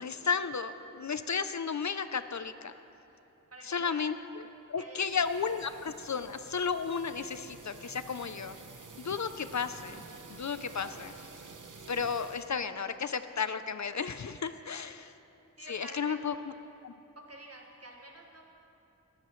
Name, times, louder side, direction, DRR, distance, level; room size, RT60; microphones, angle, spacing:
voice 1, 0.0-2.7 3.7-4.4 4.7-8.6 9.0-10.0 10.3-11.1 11.9-15.1 15.7-16.3 16.8-16.9, left 6 dB, 60° left, 11 dB, 0.5 m, -33 dB
voice 2, 3.5-4.0 4.8-5.1 14.6-14.8 15.6-16.4 17.1-18.5, right 1 dB, 50° right, 0 dB, 1.7 m, -49 dB
sound 1, 5.0-12.5, right 4 dB, 70° right, 0.9 m, -50 dB
19.0 x 12.5 x 3.1 m, 2.8 s
wide cardioid pair, 50°, 33 cm